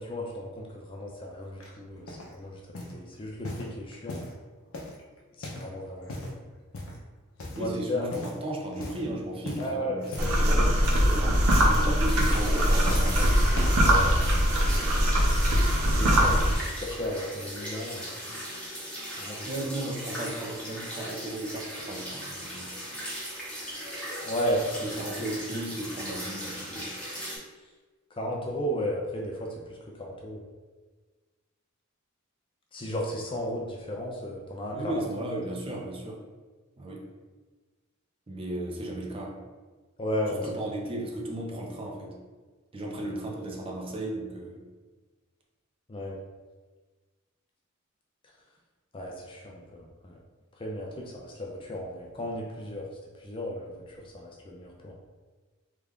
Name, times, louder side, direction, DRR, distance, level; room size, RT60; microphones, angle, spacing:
voice 1, 0.0-2.6 2.9-4.2 5.4-6.4 7.6-8.0 9.6-10.7 11.1-11.2 11.6-11.8 13.8-14.9 15.9-18.1 19.2-19.5 24.2-24.6 28.1-30.4 32.7-35.0 40.0-40.5 45.9-46.2 48.9-50.2 50.6-52.9 53.2-54.9, equal, 25° left, -1 dB, 0.4 m, -34 dB
sound 1, 1.6-2.3 2.7-3.0 3.4-4.4 4.7-5.7 6.0-6.4 6.7-7.0 7.4-7.8 8.1-8.4 8.7-9.0 9.4-10.5 10.7-11.1 11.4-11.8 12.2-13.1 13.5-13.9 14.6-14.7, left 1 dB, 70° left, 0.6 m, -38 dB
voice 2, 7.6-13.4 19.5-22.7 24.8-26.9 34.7-36.2 36.8-37.1 38.3-39.4 40.3-42.2 42.7-44.7, right 1 dB, 25° right, -2 dB, 0.6 m, -35 dB
sound 2, 10.2-16.6, equal, 85° right, 0.7 m, -22 dB
sound 3, 11.4-27.4, equal, 5° left, 0.9 m, -38 dB
3.3 x 2.4 x 3.5 m, 1.3 s
head